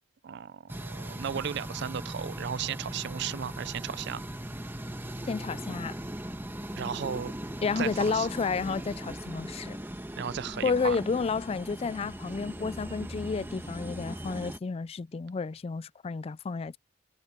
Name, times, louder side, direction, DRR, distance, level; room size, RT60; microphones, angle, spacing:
voice 1, 0.2-4.2 6.8-7.3 7.8-8.3 10.2-11.0, right 8 dB, 60° right, 0.4 m, -35 dB
sound 1, 0.7-14.6, right 1 dB, 10° right, 1.6 m, -39 dB
voice 2, 5.3-6.0 7.6-9.8 10.6-16.8, left 4 dB, 30° left, 0.3 m, -31 dB
head